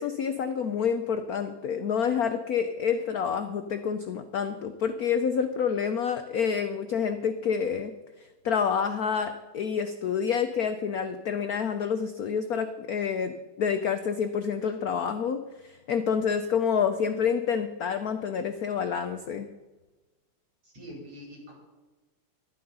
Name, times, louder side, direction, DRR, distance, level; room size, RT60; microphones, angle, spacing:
voice 1, 0.0-7.9 8.4-19.5, left 7 dB, 80° left, 9 dB, 0.8 m, -28 dB
voice 2, 20.6-21.5, equal, 65° right, -3 dB, 5.7 m, -44 dB
11.5 x 11.0 x 5.4 m, 1.2 s
omnidirectional pair, 2.4 m